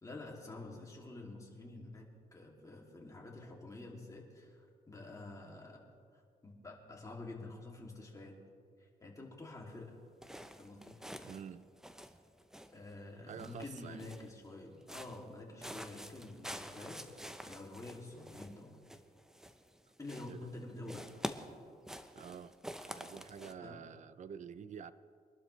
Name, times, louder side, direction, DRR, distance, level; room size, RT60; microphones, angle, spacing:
voice 1, 0.0-5.8 6.1-8.4 8.8-10.0 10.6-11.0 12.7-18.8 20.0-21.1 23.6-23.8, left 2 dB, 20° left, -2 dB, 2.8 m, -48 dB
sound 1, 10.2-11.5 11.8-12.9 13.3-14.4 14.8-15.3 15.6-19.8 20.0-20.6 20.9-23.5, equal, 5° right, 0.8 m, -47 dB
voice 2, 11.2-11.6 13.3-14.0 20.3-20.5 22.1-22.6 22.8-24.9, right 7 dB, 50° right, 14 dB, 0.6 m, -48 dB
24.5 x 12.0 x 3.3 m, 2.2 s
cardioid pair, 105°, 16 cm